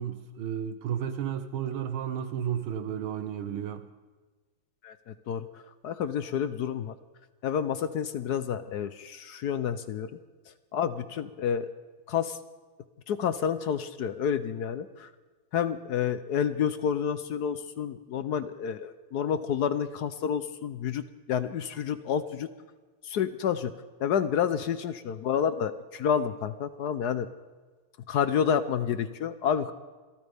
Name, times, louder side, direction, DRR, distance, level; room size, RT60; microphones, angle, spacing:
voice 1, 0.0-3.9, right 9 dB, 80° right, 1.7 m, -32 dB
voice 2, 4.8-6.9 7.4-10.2 10.7-11.7 12.1-12.4 13.1-15.1 15.5-22.5 23.0-23.7 24.0-27.3 28.1-29.7, left 8 dB, 65° left, 1.0 m, -29 dB
26.5 x 14.0 x 3.5 m
omnidirectional pair, 2.3 m